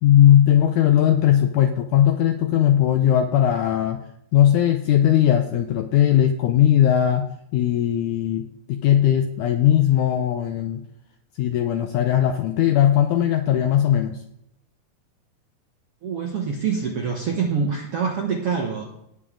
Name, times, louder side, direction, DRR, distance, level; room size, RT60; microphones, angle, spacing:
voice 1, 0.0-4.0 4.3-10.8 11.4-14.2, left 11 dB, 90° left, 7 dB, 1.8 m, -18 dB
voice 2, 16.0-18.8, right 6 dB, 70° right, 1 dB, 1.4 m, -25 dB
18.5 x 7.0 x 3.7 m, 0.79 s
omnidirectional pair, 4.3 m